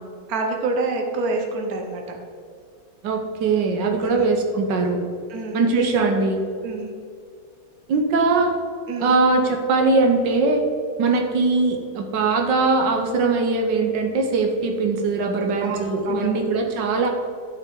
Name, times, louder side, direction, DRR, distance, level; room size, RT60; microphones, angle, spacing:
voice 1, 0.3-2.2 4.0-4.2 5.3-6.1 6.6-6.9 8.9-9.2 15.6-16.4, right 3 dB, 60° right, 2 dB, 1.6 m, -27 dB
voice 2, 3.0-5.0 5.5-6.4 7.9-8.5 9.0-10.6 11.0-17.1, right 3 dB, 90° right, 3 dB, 1.7 m, -21 dB
12.0 x 6.3 x 3.7 m, 2.3 s
omnidirectional pair, 1.9 m